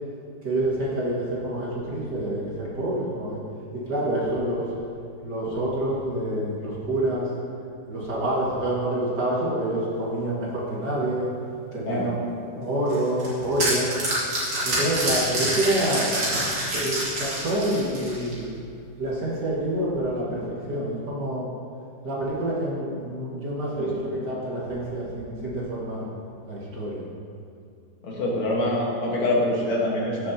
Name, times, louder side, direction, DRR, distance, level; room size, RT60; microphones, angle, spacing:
voice 1, 0.4-3.4 3.9-4.7 5.2-7.3 7.9-11.3 11.7-13.9 14.6-16.1 16.7-18.6 19.0-20.4 20.7-21.5 22.0-26.0 26.4-27.0, right 1 dB, 50° right, -6 dB, 2.5 m, -27 dB
sound 1, 12.9-18.4, right 1 dB, 85° right, 3.4 m, -26 dB
voice 2, 23.8-24.1 28.0-30.3, left 1 dB, 80° left, -4 dB, 2.5 m, -25 dB
15.0 x 6.8 x 2.9 m, 2.4 s
omnidirectional pair, 2.3 m